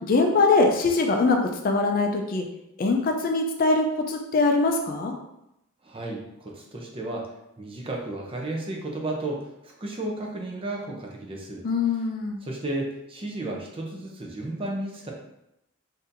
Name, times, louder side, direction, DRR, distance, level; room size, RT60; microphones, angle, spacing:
voice 1, 0.0-1.4 1.6-2.4 2.8-5.1 11.6-12.4, left 3 dB, 45° left, 2 dB, 0.4 m, -22 dB
voice 2, 5.8-7.3 7.6-11.7 12.4-15.1, right 2 dB, 25° right, -1 dB, 0.5 m, -33 dB
4.1 x 2.6 x 2.6 m, 0.85 s
head